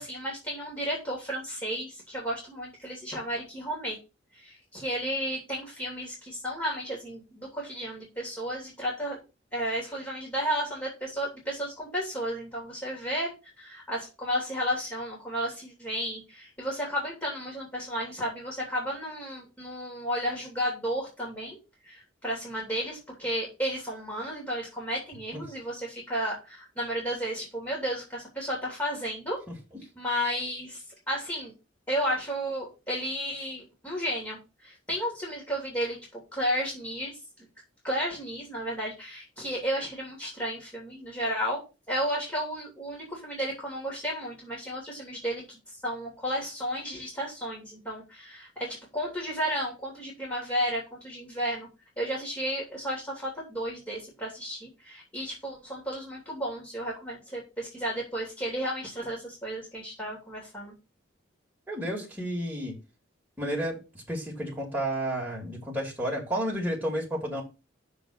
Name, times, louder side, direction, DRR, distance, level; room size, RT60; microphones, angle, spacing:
voice 1, 0.0-4.0 4.3-9.2 9.5-21.6 21.9-29.4 29.9-30.8 31.1-31.5 31.9-37.2 37.8-41.6 41.9-51.7 52.0-60.7, equal, 10° left, 3.2 m, -33 dB
voice 2, 61.7-62.7 63.4-63.8 64.1-67.4, equal, 10° right, 2.9 m, -31 dB
6.6 x 4.7 x 6.6 m
head